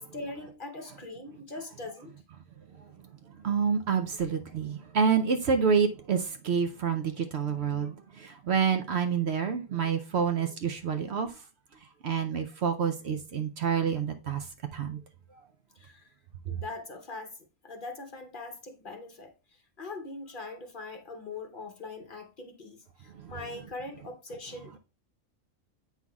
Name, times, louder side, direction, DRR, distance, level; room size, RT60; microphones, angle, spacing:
voice 1, 0.1-2.1 15.8-16.1 16.4-17.4 17.6-19.3 19.8-24.8, left 3 dB, 45° left, 0.8 m, -41 dB
voice 2, 3.4-11.3 12.0-14.4 14.7-15.0 23.2-23.3, right 6 dB, 65° right, 0.7 m, -28 dB
8.2 x 5.7 x 2.3 m
omnidirectional pair, 1.4 m